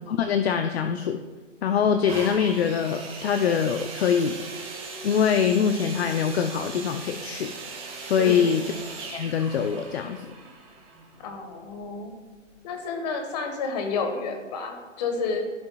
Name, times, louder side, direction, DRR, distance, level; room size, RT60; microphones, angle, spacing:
voice 1, 0.1-1.2 1.6-4.4 5.0-7.5 8.0-8.7 9.0-10.3, left 7 dB, 55° left, 7 dB, 0.6 m, -24 dB
sound 1, 2.1-11.8 12.5-12.6, right 4 dB, 15° right, 1.4 m, -39 dB
voice 2, 8.2-8.6 11.2-12.1 12.6-15.4, left 4 dB, 35° left, 4 dB, 1.4 m, -30 dB
15.0 x 5.6 x 2.3 m, 1.3 s
hypercardioid pair, 150°, 38 cm